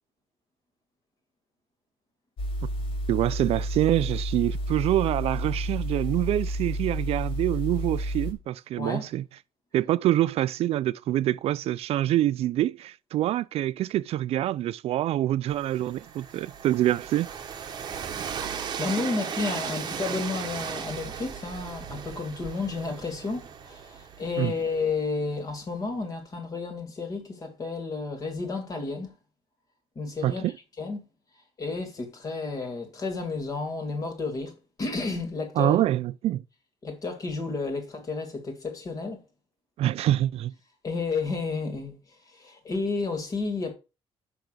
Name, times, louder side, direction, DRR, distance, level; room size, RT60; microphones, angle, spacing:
sound 1, 2.4-8.3, equal, 55° left, 2.5 m, -30 dB
voice 1, 3.1-9.2 9.7-17.3 24.4-24.5 30.2-30.5 35.6-36.4 39.8-40.5, right 13 dB, 65° right, 0.4 m, -26 dB
voice 2, 8.8-9.1 17.9-18.2 18.8-29.1 30.0-30.4 30.8-31.0 31.6-35.8 36.8-39.2 40.8-42.0 42.3-43.7, left 4 dB, 30° left, 2.1 m, -31 dB
Train, 15.5-25.3, right 7 dB, 40° right, 1.0 m, -37 dB
6.1 x 5.9 x 6.6 m
cardioid pair, 180°, 11 cm